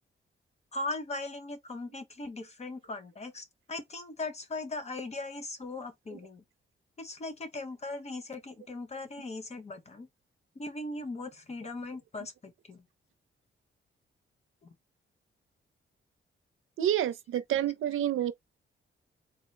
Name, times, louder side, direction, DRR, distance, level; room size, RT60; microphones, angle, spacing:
voice 1, 0.7-6.4 7.0-10.1 10.5-12.8 14.6-14.7, left 2 dB, 35° left, 0.9 m, -39 dB
voice 2, 16.8-18.3, right 11 dB, 85° right, 0.5 m, -28 dB
3.7 x 2.8 x 3.2 m
wide cardioid pair, 145°, 20 cm